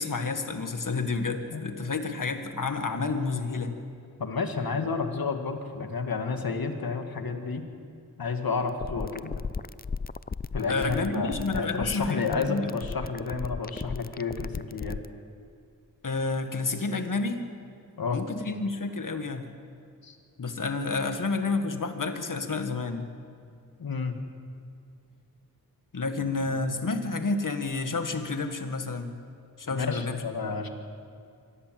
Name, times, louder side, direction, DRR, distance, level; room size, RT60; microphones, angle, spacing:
voice 1, 0.0-3.8 10.7-12.7 16.0-17.5 18.1-19.5 20.4-23.0 25.9-29.2 29.6-30.7, left 3 dB, 60° left, 7 dB, 1.9 m, -30 dB
voice 2, 4.2-7.7 8.2-9.4 10.5-15.0 18.0-18.2 20.0-20.2 23.8-24.2 26.2-26.6 29.7-30.7, left 4 dB, 75° left, 6 dB, 2.0 m, -31 dB
sound 1, 8.7-15.1, left 5 dB, 25° left, 0.5 m, -35 dB
24.0 x 16.5 x 7.8 m, 2.4 s
cardioid pair, 55°, 36 cm